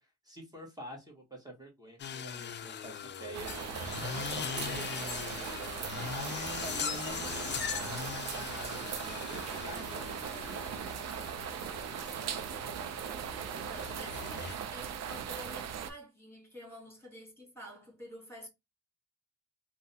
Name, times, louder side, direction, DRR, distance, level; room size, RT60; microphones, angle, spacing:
voice 1, 0.0-3.5 3.8-5.6 6.0-10.1, equal, 15° right, 1.1 m, -48 dB
sound 1, 2.0-14.5, left 7 dB, 40° left, 0.4 m, -40 dB
sound 2, 3.3-15.9, right 8 dB, 60° right, 0.5 m, -39 dB
voice 2, 13.6-18.5, equal, 10° left, 1.9 m, -49 dB
3.3 x 2.1 x 2.7 m
cardioid pair, 90°, 30 cm